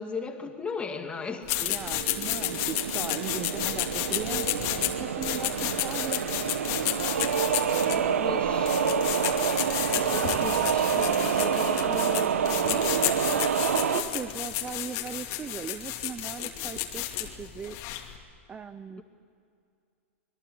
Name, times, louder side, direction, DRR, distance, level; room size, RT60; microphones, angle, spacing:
voice 1, 0.0-1.5 7.8-8.9 9.9-13.1, left 5 dB, 15° left, 5 dB, 2.4 m, -37 dB
sound 1, 1.4-18.2, left 13 dB, 45° left, 2.6 m, -32 dB
voice 2, 1.6-4.7 5.0-6.5 13.9-17.9 18.5-19.0, right 6 dB, 15° right, 12 dB, 0.6 m, -39 dB
sound 2, 1.6-14.0, right 7 dB, 85° right, 1.4 m, -27 dB
25.5 x 22.0 x 8.5 m, 2.4 s
hypercardioid pair, 125°, 7 cm